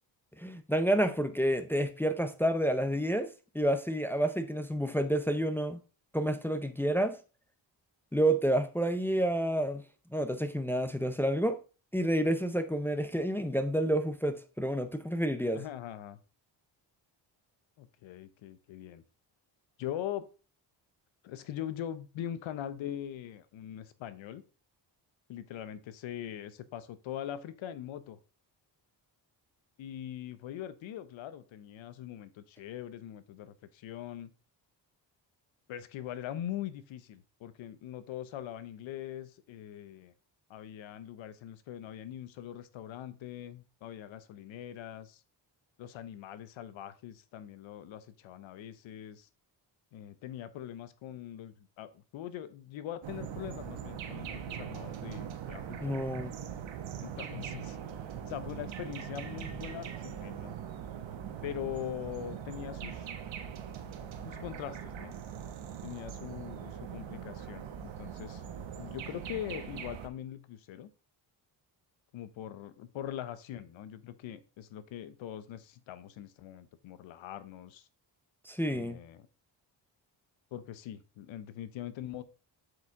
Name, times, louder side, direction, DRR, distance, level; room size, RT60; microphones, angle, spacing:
voice 1, 0.4-3.3 3.5-5.8 6.1-7.2 8.1-9.8 10.1-11.6 11.9-15.6 55.8-56.3 78.5-79.0, right 1 dB, 5° left, 0.5 m, -29 dB
voice 2, 15.5-16.2 17.8-19.0 19.8-20.3 21.2-24.4 25.3-28.2 29.8-34.3 35.7-40.1 40.5-45.2 45.8-49.3 49.9-56.0 57.0-57.8 58.3-60.6 61.4-63.1 64.2-65.2 65.8-68.4 68.8-70.9 72.1-77.9 78.7-79.3 80.5-82.2, left 11 dB, 90° left, 0.8 m, -42 dB
sound 1, 53.0-70.1, right 8 dB, 75° right, 1.1 m, -41 dB
8.0 x 4.9 x 3.6 m
cardioid pair, 95°, 45 cm